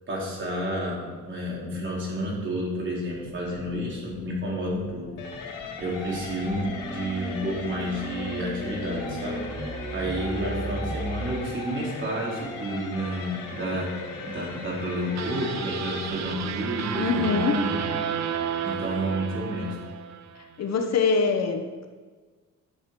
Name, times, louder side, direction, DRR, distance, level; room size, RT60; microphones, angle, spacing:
voice 1, 0.1-5.1 5.8-9.5 9.9-18.0 18.6-19.8, equal, 40° right, -4 dB, 4.3 m, -30 dB
sound 1, 3.1-11.3, right 1 dB, 80° right, 4.1 m, -37 dB
sound 2, 5.2-16.1, left 3 dB, 85° left, 2.1 m, -38 dB
sound 3, 15.1-20.4, right 8 dB, 60° right, 0.9 m, -32 dB
voice 2, 16.9-17.6 20.6-21.9, left 4 dB, 55° left, 6 dB, 1.2 m, -24 dB
11.5 x 7.1 x 6.0 m, 1.4 s
cardioid pair, 145°, 31 cm